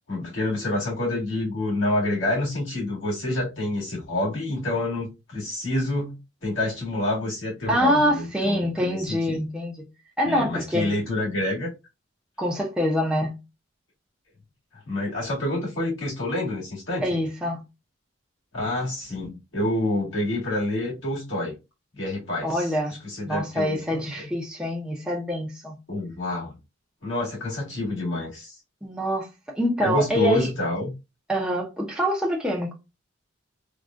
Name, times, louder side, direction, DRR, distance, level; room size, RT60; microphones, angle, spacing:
voice 1, 0.1-9.4 10.3-11.7 14.9-17.2 18.5-21.5 21.9-22.7 23.0-24.3 25.9-26.5 27.0-28.6 29.8-30.9, left 1 dB, 65° left, 1.9 m, -28 dB
voice 2, 7.7-9.8 10.2-11.0 12.4-13.4 17.0-17.6 22.4-22.9 23.2-25.8 28.8-29.3 29.5-30.5 31.3-32.7, equal, 5° right, 0.6 m, -25 dB
3.5 x 2.3 x 2.5 m
head